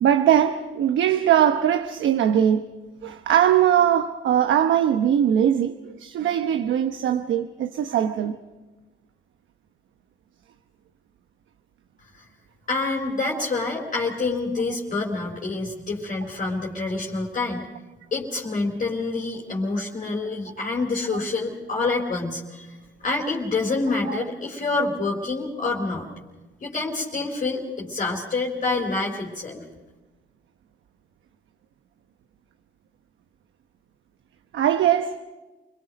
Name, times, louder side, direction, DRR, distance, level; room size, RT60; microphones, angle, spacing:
voice 1, 0.0-2.6 3.0-8.4 13.2-13.3 20.6-20.7 24.1-24.2 34.5-35.2, right 10 dB, 75° right, 1.0 m, -21 dB
voice 2, 12.7-17.6 18.1-22.7 23.0-26.1 26.6-29.6, left 3 dB, 40° left, 4.0 m, -27 dB
29.5 x 21.0 x 5.2 m
cardioid pair, 90°, 20 cm